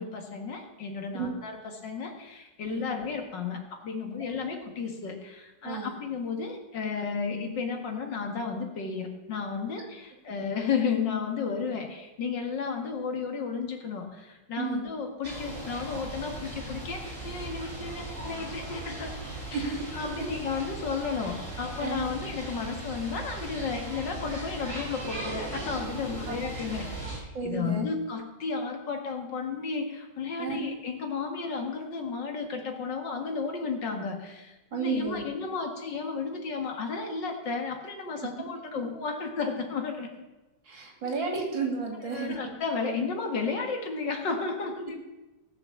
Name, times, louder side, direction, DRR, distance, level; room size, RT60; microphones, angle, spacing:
voice 1, 0.0-19.1 19.5-40.1 41.0-41.1 42.0-45.0, left 5 dB, 65° left, 3 dB, 2.4 m, -33 dB
voice 2, 14.6-14.9 19.5-19.8 20.2-20.3 21.8-21.9 26.2-26.3 27.3-27.8 30.4-30.6 34.7-35.2 40.7-42.4, right 4 dB, 75° right, 1 dB, 3.3 m, -32 dB
sound 1, 15.2-27.2, right 2 dB, 40° right, 4.6 m, -38 dB
17.0 x 6.6 x 7.2 m, 1.1 s
omnidirectional pair, 2.1 m